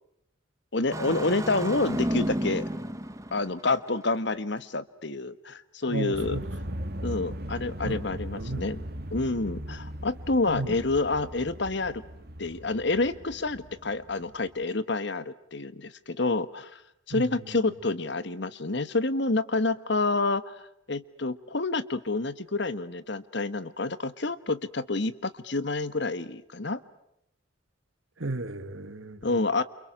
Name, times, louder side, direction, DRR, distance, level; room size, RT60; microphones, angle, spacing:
voice 1, 0.7-2.6 3.3-6.4 7.0-8.8 9.1-12.0 12.4-16.8 17.1-26.8 29.2-29.6, left 3 dB, 60° left, 1.4 m, -28 dB
Engine starting, 0.9-3.9, right 1 dB, 15° right, 1.4 m, -32 dB
voice 2, 5.9-6.4 6.7-6.8 7.8-8.1 8.3-8.7 10.5-10.7 17.1-17.2 28.2-29.2, right 2 dB, 75° right, 2.0 m, -33 dB
sound 1, 6.1-14.6, equal, 50° right, 1.9 m, -39 dB
29.5 x 29.0 x 6.6 m
head